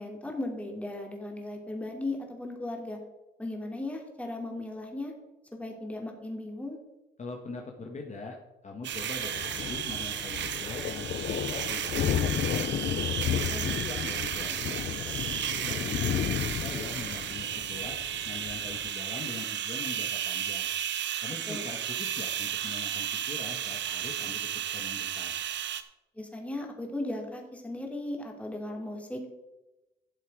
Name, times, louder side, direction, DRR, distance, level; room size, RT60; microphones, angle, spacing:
voice 1, 0.0-3.0 3.4-5.1 5.5-6.8 13.5-13.7 21.5-21.7 26.1-29.2, left 2 dB, 5° left, 1 dB, 2.8 m, -36 dB
voice 2, 7.2-8.4 8.6-12.8 13.3-16.0 16.4-18.0 18.2-20.7 21.2-25.3, left 3 dB, 35° left, 0 dB, 1.6 m, -42 dB
sound 1, 8.8-25.8, right 10 dB, 65° right, 1.0 m, -33 dB
Thunder, 8.9-18.9, left 10 dB, 50° left, 0.5 m, -33 dB
12.0 x 7.3 x 4.8 m, 1.0 s
cardioid pair, 90°, 20 cm